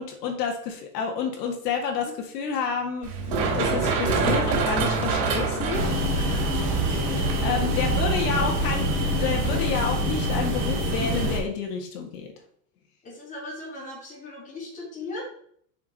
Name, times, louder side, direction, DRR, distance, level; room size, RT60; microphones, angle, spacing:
voice 1, 0.0-6.3 6.9-12.3, left 5 dB, 80° left, 2 dB, 2.0 m, -30 dB
Run, 3.0-10.6, right 4 dB, 70° right, 3.2 m, -27 dB
sound 1, 5.7-11.4, equal, 35° right, 2.3 m, -26 dB
voice 2, 8.1-8.4 13.0-15.2, left 2 dB, 15° left, -3 dB, 2.3 m, -38 dB
6.9 x 5.1 x 4.2 m, 0.62 s
supercardioid pair, 175°, 48 cm